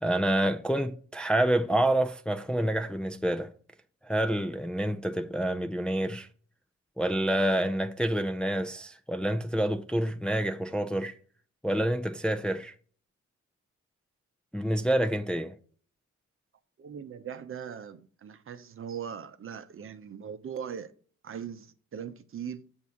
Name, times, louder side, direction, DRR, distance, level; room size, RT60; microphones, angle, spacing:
voice 1, 0.0-3.5 4.0-6.3 7.0-11.1 11.6-12.7 14.5-15.5, right 1 dB, 5° left, 0.5 m, -28 dB
voice 2, 16.8-20.9 21.2-22.6, right 8 dB, 45° right, 0.8 m, -40 dB
8.1 x 2.8 x 6.1 m
cardioid pair, 90°, 30 cm